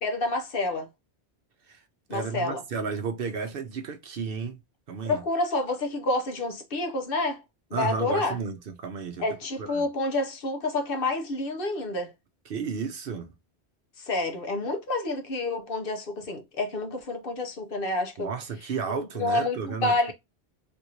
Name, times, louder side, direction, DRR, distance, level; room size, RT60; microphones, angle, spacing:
voice 1, 0.0-0.9 2.1-2.6 5.1-7.4 7.7-8.4 9.2-12.1 14.0-18.3 18.9-20.1, left 2 dB, 60° left, 1.0 m, -28 dB
voice 2, 2.1-4.6 4.9-5.2 7.7-9.3 9.6-9.9 12.5-13.3 18.2-20.1, right 5 dB, 65° right, 0.8 m, -33 dB
3.4 x 2.5 x 2.9 m
omnidirectional pair, 1.1 m